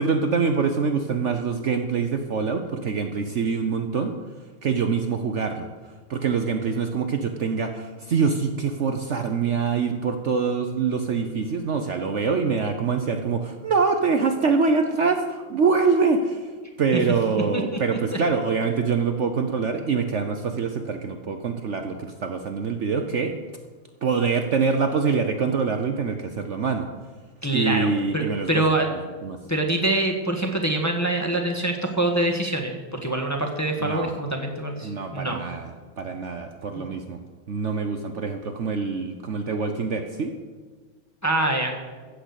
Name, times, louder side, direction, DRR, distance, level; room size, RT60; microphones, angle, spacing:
voice 1, 0.0-4.2 4.6-5.7 6.1-16.5 16.8-23.3 24.0-26.9 27.5-28.6 29.2-29.4 33.8-34.1 34.8-35.7 36.0-37.2 37.5-40.3, right 5 dB, 90° right, 6 dB, 0.6 m, -24 dB
voice 2, 27.4-27.9 28.1-28.9 29.5-35.4 36.7-36.9 41.2-41.8, right 1 dB, 10° left, 1 dB, 1.1 m, -25 dB
15.0 x 6.6 x 8.3 m, 1.4 s
omnidirectional pair, 2.4 m